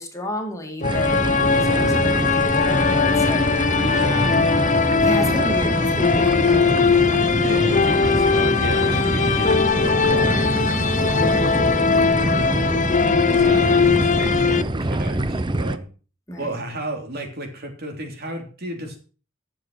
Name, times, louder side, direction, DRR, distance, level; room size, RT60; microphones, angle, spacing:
voice 1, 0.0-3.5 4.0-4.5 5.0-6.6 6.9-7.4 7.7-8.0 11.8-12.4 13.5-13.9 16.3-16.5, left 1 dB, 15° left, 2 dB, 2.5 m, -32 dB
sound 1, 0.8-14.6, left 5 dB, 40° left, 0.7 m, -20 dB
sound 2, 0.8-15.8, right 1 dB, 25° right, 0.7 m, -25 dB
voice 2, 3.7-4.3 7.4-11.2 12.0-12.3 13.4-15.9 16.4-19.0, right 1 dB, 55° right, 3 dB, 3.3 m, -33 dB
12.0 x 7.5 x 6.5 m, 0.37 s
head